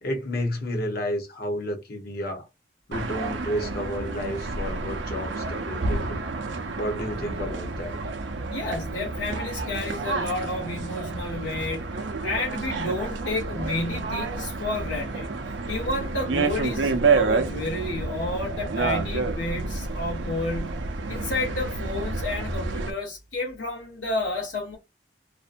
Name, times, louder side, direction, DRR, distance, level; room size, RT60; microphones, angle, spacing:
voice 1, 0.0-2.5 2.9-6.2 6.8-8.0, equal, 55° left, 0.9 m, -31 dB
sound 1, 2.9-22.9, right 3 dB, 85° right, 0.5 m, -29 dB
voice 2, 8.5-24.8, left 2 dB, 85° left, 0.8 m, -31 dB
2.6 x 2.1 x 2.5 m
head